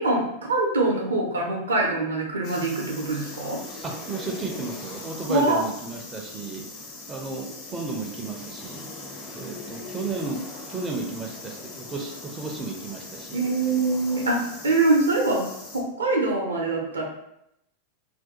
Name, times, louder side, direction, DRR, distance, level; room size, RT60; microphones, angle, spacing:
voice 1, 0.0-3.6 5.3-5.6 13.3-15.5 15.7-17.0, right 2 dB, 70° right, 0 dB, 0.5 m, -24 dB
sound 1, 2.4-15.8, left 2 dB, 35° left, 0.6 m, -40 dB
voice 2, 3.8-6.7 7.1-8.9 9.4-10.4 10.7-13.4, right 3 dB, 15° right, 0 dB, 0.4 m, -33 dB
2.4 x 2.2 x 2.7 m, 0.79 s
figure-of-eight pair, 90°, 0 cm